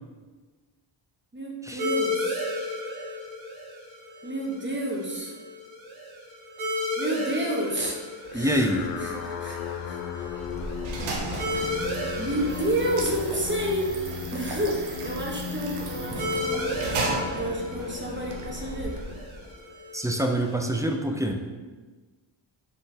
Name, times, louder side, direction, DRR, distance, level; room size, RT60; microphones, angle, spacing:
voice 1, 1.3-2.5 4.2-5.4 7.0-8.7 9.0-10.3 12.1-19.0, right 1 dB, 25° right, -2 dB, 1.1 m, -30 dB
sound 1, 1.8-20.9, left 1 dB, 70° right, 1.4 m, -35 dB
sound 2, 8.2-19.7, left 7 dB, 80° left, 0.6 m, -37 dB
voice 2, 8.3-8.8 19.9-21.4, right 1 dB, 5° right, 3 dB, 0.4 m, -25 dB
sound 3, 10.2-19.5, right 2 dB, 85° right, 0.8 m, -35 dB
5.7 x 3.2 x 2.8 m, 1.4 s
cardioid pair, 65°, 49 cm